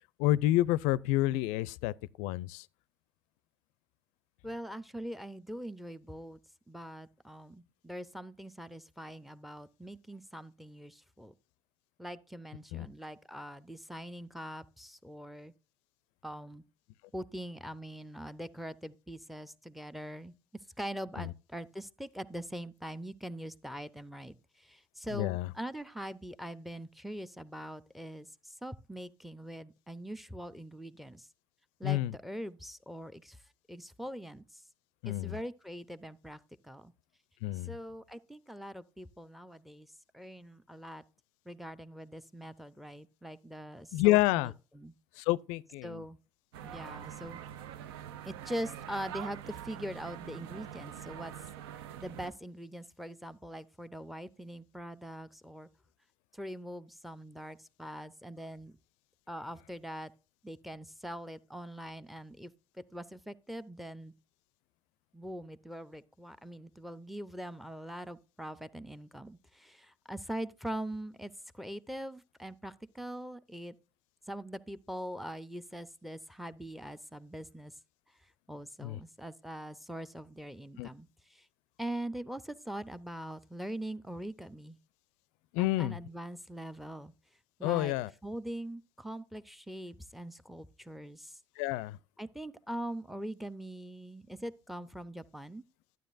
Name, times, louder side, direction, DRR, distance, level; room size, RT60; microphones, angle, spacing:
voice 1, 0.2-2.6 12.7-12.9 21.2-21.3 25.1-25.5 31.8-32.1 35.0-35.3 37.4-37.7 43.9-44.5 45.2-46.0 78.8-79.0 80.8-80.9 85.5-86.0 87.6-88.1 91.6-92.0, left 16 dB, 70° left, 0.4 m, -29 dB
voice 2, 4.4-6.4 6.7-11.3 12.0-15.5 16.2-16.6 17.1-20.3 20.8-31.3 31.8-33.4 33.7-34.6 35.1-36.9 37.7-41.0 41.5-44.9 45.8-46.2 46.6-47.4 48.2-51.3 52.0-55.7 56.3-58.7 59.3-60.1 60.4-62.5 62.9-64.1 65.1-73.7 74.3-77.7 78.5-81.5 81.8-84.8 85.6-87.1 87.6-87.9 88.2-91.4 92.2-95.6, right 1 dB, ahead, 0.7 m, -42 dB
sound 1, 46.5-52.3, right 10 dB, 80° right, 0.5 m, -44 dB
12.0 x 9.2 x 2.6 m
hypercardioid pair, 65°, 13 cm